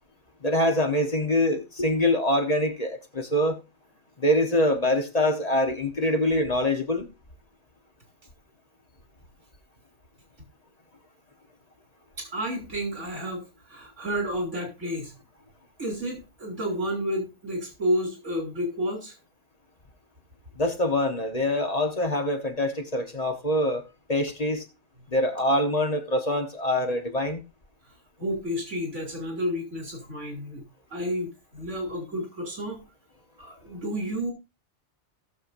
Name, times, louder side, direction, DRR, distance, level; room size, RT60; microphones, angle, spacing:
voice 1, 0.4-3.6 4.2-7.1 20.5-23.8 24.1-24.6 25.1-27.4, left 1 dB, 35° left, 1.3 m, -24 dB
voice 2, 12.2-15.1 15.8-19.1 28.2-30.6 30.9-32.8 33.4-34.3, equal, 85° right, 3.5 m, -31 dB
17.5 x 6.7 x 2.6 m
omnidirectional pair, 1.2 m